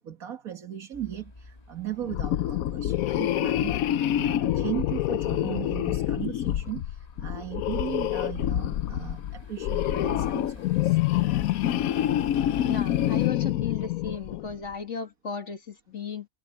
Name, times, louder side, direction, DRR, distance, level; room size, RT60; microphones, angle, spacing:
voice 1, 0.0-3.8 4.1-11.0, right 12 dB, 85° right, 2.2 m, -37 dB
sound 1, 0.9-13.3, left 2 dB, 30° left, 1.9 m, -50 dB
sound 2, 2.1-14.6, left 12 dB, 85° left, 1.1 m, -27 dB
voice 2, 12.6-16.3, left 6 dB, 60° left, 2.2 m, -35 dB
omnidirectional pair, 1.5 m